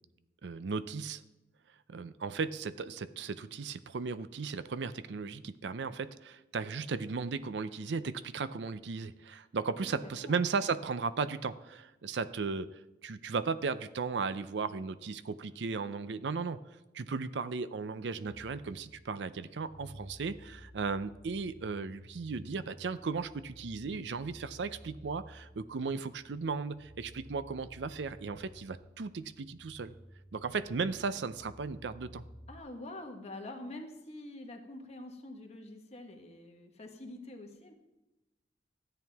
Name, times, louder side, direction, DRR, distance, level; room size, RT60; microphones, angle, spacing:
voice 1, 0.4-1.2 1.9-16.6 16.9-29.9 30.3-32.2, right 4 dB, 80° right, 14 dB, 0.5 m, -36 dB
voice 2, 9.8-10.3 32.5-37.7, left 2 dB, 40° left, 3 dB, 1.4 m, -46 dB
sound 1, 18.3-32.6, equal, 20° left, 0.8 m, -54 dB
13.5 x 9.0 x 3.5 m, 0.99 s
head